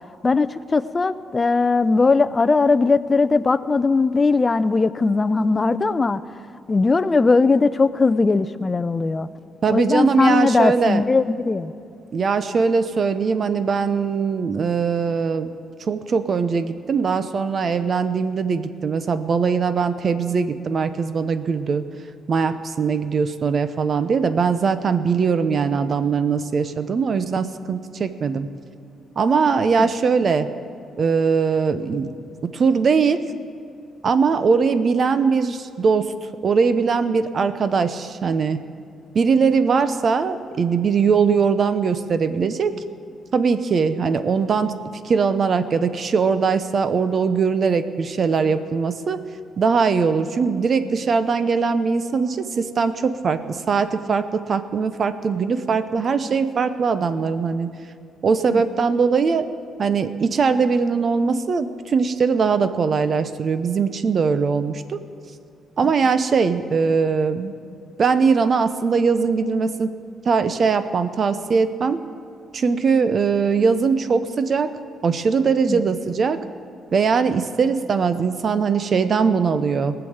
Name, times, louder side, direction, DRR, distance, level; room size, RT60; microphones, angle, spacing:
voice 1, 0.2-6.2 6.7-9.3 9.7-11.7 58.5-58.6 75.7-75.8, left 3 dB, 30° left, 14 dB, 0.5 m, -19 dB
voice 2, 9.6-11.0 12.1-15.5 15.8-21.8 22.3-28.5 29.2-30.5 31.0-32.1 32.5-33.2 34.0-36.1 36.4-38.6 39.1-42.7 43.3-44.7 45.0-49.2 49.6-57.7 58.2-59.5 59.8-65.0 65.8-67.5 68.0-69.9 70.2-72.0 72.5-74.7 75.0-76.4 76.9-79.9, right 5 dB, 45° right, 11 dB, 0.8 m, -21 dB
18.5 x 7.0 x 7.9 m, 2.4 s
cardioid pair, 90°, 0 cm